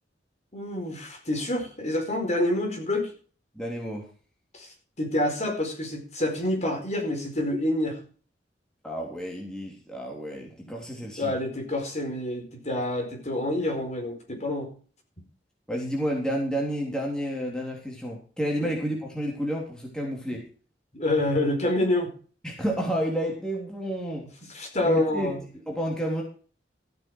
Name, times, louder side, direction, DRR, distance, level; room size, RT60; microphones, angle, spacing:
voice 1, 0.5-3.1 4.5-4.7 5.0-8.0 11.2-14.7 18.6-18.7 20.9-22.1 24.5-25.4, left 1 dB, 40° left, 3 dB, 4.4 m, -27 dB
voice 2, 3.5-4.1 8.8-11.3 15.7-20.4 22.4-24.2 24.8-25.3 25.7-26.2, equal, 5° left, -1 dB, 3.3 m, -30 dB
14.5 x 8.9 x 4.7 m, 0.40 s
head